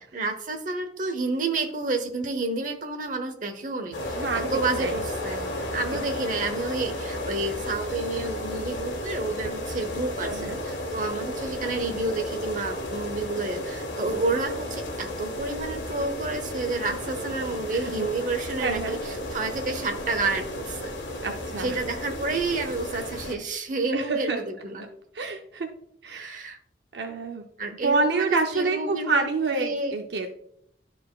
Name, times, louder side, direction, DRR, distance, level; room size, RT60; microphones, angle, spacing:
voice 1, 0.1-20.9 21.6-24.8 26.1-26.6 27.6-30.0, right 3 dB, 45° right, 6 dB, 0.9 m, -30 dB
sound 1, 3.9-23.3, left 1 dB, 80° left, 1.6 m, -33 dB
voice 2, 4.1-5.0 5.7-5.9 10.2-10.6 17.7-18.1 18.6-19.0 21.2-21.8 23.9-24.4 25.1-25.7 26.0-26.5 26.9-27.4 27.8-30.3, right 3 dB, 70° right, 4 dB, 0.6 m, -28 dB
11.5 x 4.2 x 2.4 m, 0.70 s
head